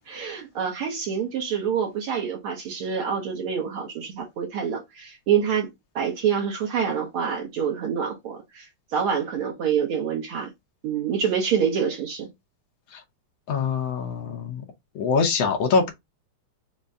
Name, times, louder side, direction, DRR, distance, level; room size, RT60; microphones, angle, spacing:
voice 1, 0.1-5.7 5.9-10.5 10.8-12.3, right 7 dB, 65° right, 1.3 m, -26 dB
voice 2, 13.5-14.6 14.9-15.9, left 5 dB, 70° left, 1.6 m, -24 dB
5.3 x 2.2 x 3.5 m
omnidirectional pair, 3.6 m